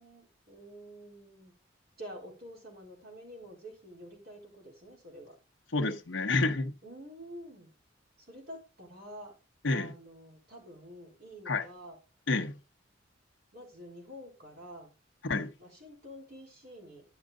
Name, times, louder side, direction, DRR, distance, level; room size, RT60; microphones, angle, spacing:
voice 1, 0.0-1.5 2.0-5.4 6.8-7.7 8.2-9.3 9.7-12.0 13.5-14.9 15.6-17.0, equal, 55° right, 4.0 m, -48 dB
voice 2, 5.7-6.7 9.6-9.9 11.5-11.7 12.3-12.6 15.2-15.5, left 3 dB, 75° left, 0.9 m, -29 dB
10.5 x 6.4 x 3.7 m
head